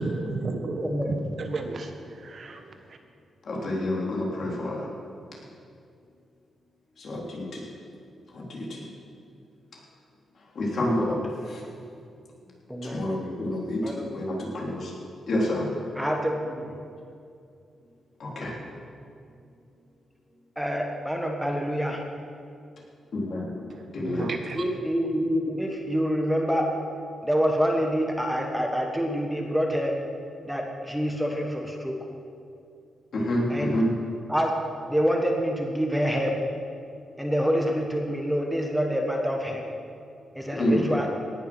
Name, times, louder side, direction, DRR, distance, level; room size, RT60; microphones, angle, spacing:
voice 1, 0.0-2.6 24.0-24.6, right 3 dB, 50° right, 5 dB, 1.2 m, -32 dB
voice 2, 0.8-1.1 12.7-13.0 13.8-14.1 16.0-16.7 18.4-18.5 20.6-22.0 24.1-24.2 24.5-26.7 27.2-30.0 30.5-32.0 33.5-33.7 34.3-34.5 34.9-36.3 37.2-39.6 40.3-41.1, equal, ahead, 1 dB, 1.4 m, -26 dB
voice 3, 3.4-4.9 7.0-7.7 8.3-8.8 10.5-11.6 12.8-13.8 14.1-14.9 15.3-15.7 18.2-18.5 23.1-23.6 23.9-24.3 33.1-33.9 40.5-40.9, left 1 dB, 55° left, -4 dB, 3.5 m, -28 dB
18.0 x 7.1 x 6.2 m, 2.4 s
cardioid pair, 105°, 0 cm